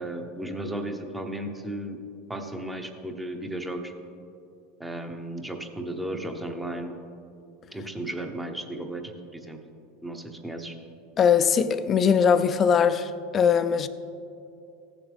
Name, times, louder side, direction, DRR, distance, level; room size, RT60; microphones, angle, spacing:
voice 1, 0.0-2.0 2.3-3.9 4.8-6.9 7.7-9.6 10.0-10.7, right 1 dB, 10° right, 1.0 m, -34 dB
voice 2, 11.2-13.9, left 7 dB, 35° left, 0.5 m, -21 dB
15.5 x 7.1 x 3.5 m
supercardioid pair, 110°, 0 cm